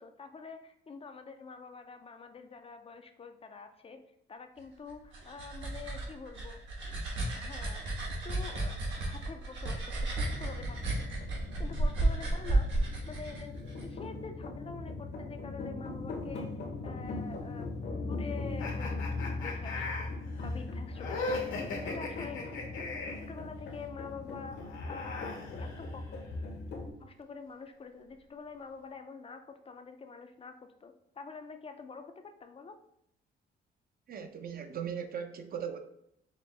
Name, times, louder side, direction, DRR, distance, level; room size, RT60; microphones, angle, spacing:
voice 1, 0.0-4.0 4.3-7.0 7.3-7.9 8.2-12.8 13.1-16.5 16.8-20.1 20.4-26.0 27.0-32.8, left 5 dB, 30° left, 7 dB, 0.4 m, -47 dB
sound 1, 4.9-13.8, right 2 dB, 70° right, 1.2 m, -33 dB
sound 2, 10.2-26.9, left 3 dB, 60° left, 0.8 m, -40 dB
sound 3, 18.6-23.3 24.5-26.2, left 3 dB, 80° left, 1.0 m, -39 dB
voice 2, 34.1-35.8, right 7 dB, 50° right, 7 dB, 0.5 m, -38 dB
5.0 x 2.0 x 3.2 m, 0.73 s
cardioid pair, 90°, 20 cm